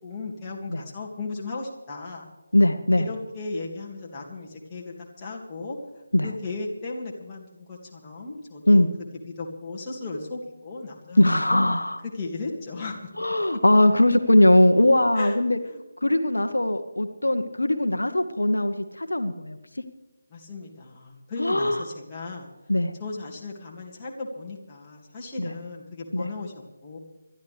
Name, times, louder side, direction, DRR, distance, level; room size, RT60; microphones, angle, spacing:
voice 1, 0.0-2.2 3.0-5.8 6.2-8.9 9.2-11.2 11.5-11.6 12.0-13.1 15.1-15.4 15.7-15.8 20.3-22.5 23.0-27.0, left 3 dB, 15° left, -4 dB, 2.3 m, -36 dB
voice 2, 2.5-3.1 6.1-6.3 8.7-8.9 11.2-12.0 13.2-15.6 16.0-19.6 21.4-21.8 22.7-22.9 25.4-25.5 26.1-26.3, left 1 dB, 70° left, 8 dB, 1.1 m, -20 dB
27.0 x 12.5 x 3.4 m, 1.1 s
figure-of-eight pair, 155°, 0 cm